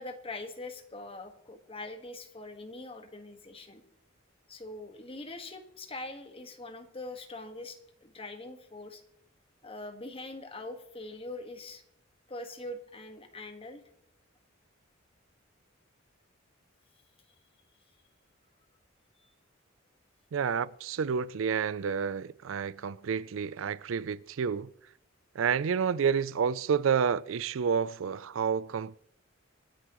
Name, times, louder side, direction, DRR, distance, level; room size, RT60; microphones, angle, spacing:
voice 1, 0.0-3.8 4.5-9.0 9.6-11.8 12.3-13.8, left 2 dB, 30° left, 1.6 m, -43 dB
voice 2, 20.3-24.7 25.4-29.0, right 6 dB, 70° right, 0.4 m, -29 dB
26.5 x 10.0 x 3.1 m
head